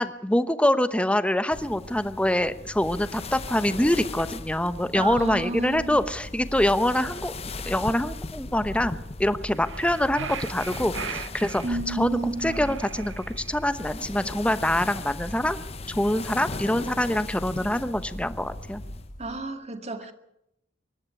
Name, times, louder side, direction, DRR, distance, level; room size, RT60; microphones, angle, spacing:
voice 1, 0.0-7.3 7.7-15.6 15.9-18.8, left 1 dB, 5° left, 1.0 m, -25 dB
sound 1, 1.5-19.1, left 3 dB, 35° left, 0.8 m, -39 dB
sound 2, 2.7-19.4, equal, 55° left, 4.3 m, -42 dB
voice 2, 4.9-6.0 11.6-12.7 19.2-20.1, right 2 dB, 35° right, 2.0 m, -32 dB
sound 3, 9.5-11.7 12.4-13.6, right 7 dB, 80° right, 0.8 m, -38 dB
24.0 x 11.5 x 9.7 m
head